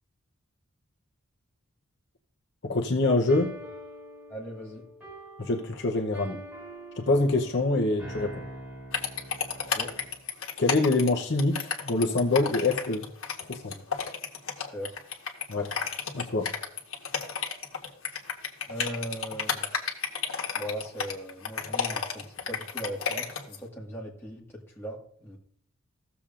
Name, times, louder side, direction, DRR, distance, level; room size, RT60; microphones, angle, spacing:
voice 1, 2.6-3.6 5.4-6.4 7.0-8.4 10.6-13.1 13.4-13.8 15.5-15.7 16.1-16.5, left 2 dB, 55° left, 1 dB, 0.7 m, -25 dB
sound 1, 3.3-10.2, right 1 dB, 5° right, 3.4 m, -45 dB
voice 2, 4.3-4.8 9.7-9.9 14.7-15.0 18.7-19.7 20.5-25.4, equal, 10° left, -4 dB, 1.6 m, -39 dB
sound 2, 8.9-23.6, left 6 dB, 70° left, 1.2 m, -31 dB
15.0 x 7.0 x 2.5 m, 0.63 s
head